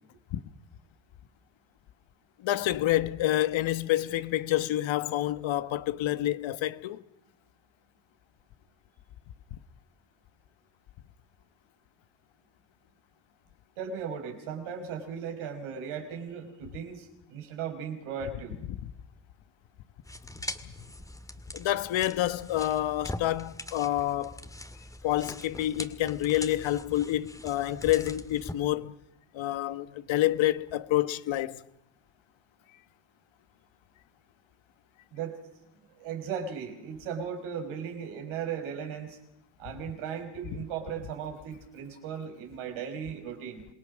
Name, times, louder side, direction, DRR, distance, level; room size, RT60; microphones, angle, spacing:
voice 1, 2.4-7.0 18.8-18.9 21.5-24.4 25.0-29.0 29.3-31.6, left 14 dB, 65° left, 1.3 m, -28 dB
voice 2, 13.8-18.6 35.1-35.3 36.0-39.2 39.6-43.7, right 7 dB, 80° right, 5.0 m, -37 dB
sound 1, 20.0-28.5, left 1 dB, 5° left, 2.0 m, -42 dB
27.0 x 19.5 x 6.3 m
cardioid pair, 100°, 50 cm